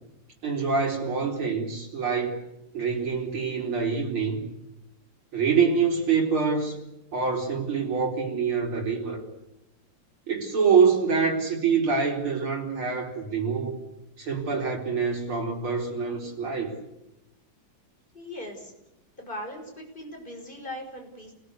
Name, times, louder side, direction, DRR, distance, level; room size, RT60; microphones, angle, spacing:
voice 1, 0.4-2.4 2.7-4.5 5.3-6.8 7.1-9.2 10.3-13.8 14.2-16.8, right 5 dB, 90° right, 0 dB, 5.3 m, -25 dB
voice 2, 18.1-18.7 19.2-21.3, left 1 dB, 25° left, 2 dB, 6.1 m, -39 dB
28.5 x 18.0 x 8.3 m, 0.92 s
omnidirectional pair, 2.2 m